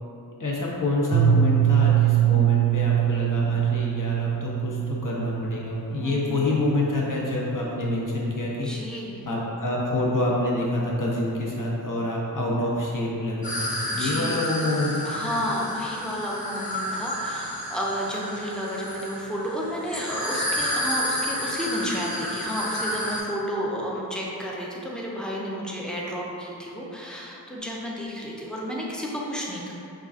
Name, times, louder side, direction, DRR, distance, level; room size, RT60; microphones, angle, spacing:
voice 1, 0.4-8.9 9.3-15.2, left 2 dB, 50° left, -4 dB, 0.8 m, -27 dB
Piano, 1.1-6.7, right 11 dB, 80° right, 0.6 m, -23 dB
voice 2, 6.0-6.4 8.6-9.2 13.9-14.4 15.0-29.7, equal, ahead, -4 dB, 0.6 m, -31 dB
sound 1, 13.4-23.2, equal, 20° left, 1.0 m, -30 dB
5.3 x 2.4 x 2.4 m, 2.7 s
wide cardioid pair, 45°, 40 cm